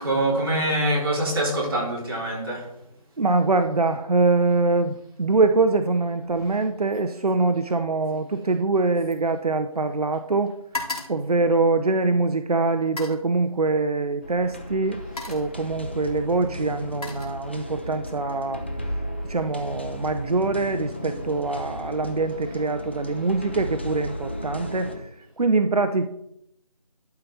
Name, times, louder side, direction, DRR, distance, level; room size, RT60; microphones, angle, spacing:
voice 1, 0.0-2.7, right 1 dB, 40° right, -5 dB, 4.2 m, -24 dB
voice 2, 3.2-10.5 11.1-15.0 15.3-18.6 19.3-25.1 25.4-26.1, right 3 dB, 85° right, 8 dB, 0.8 m, -23 dB
sound 1, 6.2-6.6 6.9-10.0 10.3-12.2 12.8-13.3 14.3-14.5 14.9-15.6 16.5-17.8 18.2-18.6, left 2 dB, 90° left, 3.3 m, -39 dB
sound 2, 14.2-25.0, equal, 20° left, 0.5 m, -35 dB
11.5 x 5.8 x 4.2 m, 0.77 s
figure-of-eight pair, 170°, 19 cm